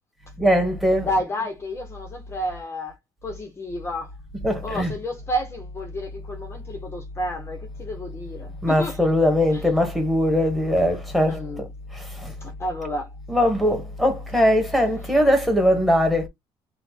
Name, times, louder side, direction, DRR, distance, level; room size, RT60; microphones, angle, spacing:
voice 1, 0.4-1.1 4.4-4.9 8.6-11.7 11.9-12.3 13.3-16.3, equal, ahead, 1.6 m, -21 dB
voice 2, 1.0-3.0 3.2-4.1 4.6-9.0 11.3-11.6 12.4-13.1, equal, 25° left, 1.1 m, -30 dB
4.4 x 2.5 x 4.3 m
cardioid pair, 140°, 10 cm